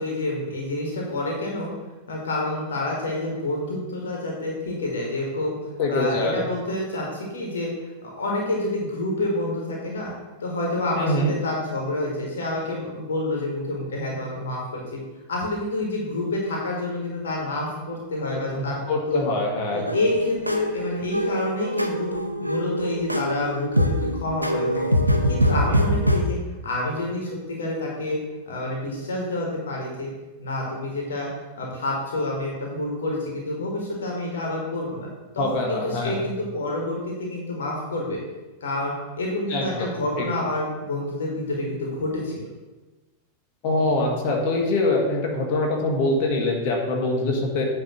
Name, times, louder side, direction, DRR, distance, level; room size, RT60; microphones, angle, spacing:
voice 1, 0.0-1.7 2.1-5.6 5.9-10.1 10.4-15.0 15.3-18.8 19.1-19.2 19.7-22.1 22.4-24.9 25.3-26.4 26.6-30.1 30.4-31.3 31.6-35.1 35.3-38.2 38.6-42.4, left 1 dB, 65° left, -2 dB, 1.8 m, -28 dB
voice 2, 5.8-6.5 10.9-11.3 18.5-19.9 35.4-36.2 39.5-39.9 40.2-40.3 43.6-47.7, left 2 dB, 45° left, -1 dB, 1.6 m, -24 dB
sound 1, 19.9-26.2, equal, 90° right, 0.6 m, -23 dB
9.0 x 3.5 x 6.4 m, 1.2 s
figure-of-eight pair, 90°, 0 cm